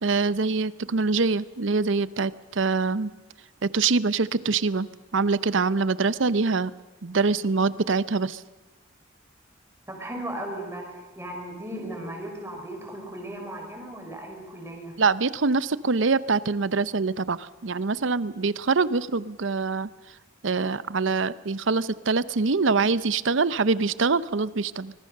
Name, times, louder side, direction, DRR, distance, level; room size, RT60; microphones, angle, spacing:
voice 1, 0.0-3.1 3.6-6.7 7.0-8.4 15.0-19.9 20.4-24.9, right 4 dB, 70° right, 16 dB, 0.7 m, -24 dB
voice 2, 9.9-14.9, right 1 dB, 15° right, 1 dB, 5.5 m, -36 dB
24.5 x 21.0 x 6.7 m, 1.2 s
head